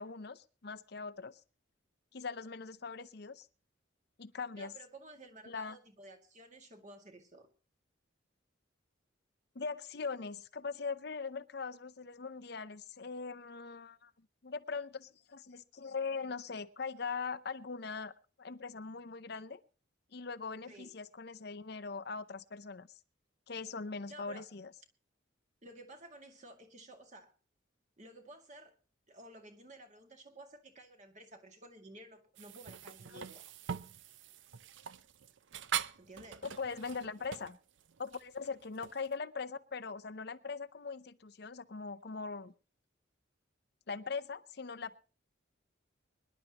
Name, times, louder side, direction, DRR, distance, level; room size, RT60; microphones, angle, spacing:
voice 1, 0.0-1.4 2.1-3.5 4.2-4.7 5.5-5.8 9.5-14.1 14.4-18.1 18.4-19.6 20.1-22.9 23.5-24.7 33.1-33.2 36.4-37.6 38.0-42.5 43.9-45.0, left 4 dB, 55° left, 12 dB, 0.7 m, -41 dB
voice 2, 4.6-7.5 20.7-20.9 24.1-24.4 25.6-27.3 28.0-28.8 29.1-33.4 35.9-36.5, right 2 dB, 35° right, 5 dB, 2.1 m, -53 dB
sound 1, 32.4-39.2, right 8 dB, 70° right, 0.6 m, -43 dB
24.5 x 11.0 x 3.0 m, 0.35 s
head